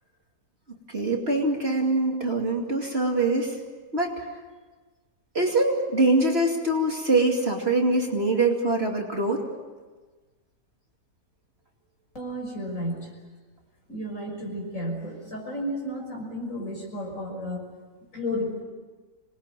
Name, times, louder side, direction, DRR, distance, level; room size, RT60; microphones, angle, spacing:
voice 1, 0.9-3.6 3.9-4.3 5.3-9.5, right 2 dB, 35° right, 0 dB, 2.8 m, -23 dB
voice 2, 12.1-13.1 13.9-17.6 18.1-18.6, equal, 50° left, 0 dB, 6.4 m, -32 dB
25.5 x 20.5 x 9.1 m, 1.3 s
omnidirectional pair, 1.8 m